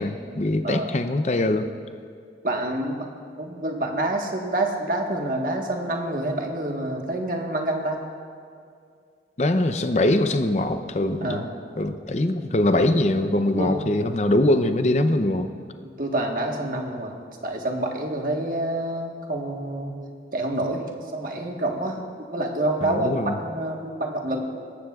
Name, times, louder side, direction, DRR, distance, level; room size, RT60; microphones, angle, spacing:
voice 1, 0.0-1.7 9.4-11.5 11.8-15.5 22.8-23.3, left 1 dB, 40° left, 9 dB, 0.6 m, -22 dB
voice 2, 2.4-3.1 3.4-8.0 11.2-11.5 13.5-13.8 15.8-17.1 17.4-20.0 20.3-23.1 23.4-24.5, right 1 dB, 50° right, 1 dB, 1.4 m, -27 dB
18.5 x 15.0 x 2.4 m, 2.3 s
head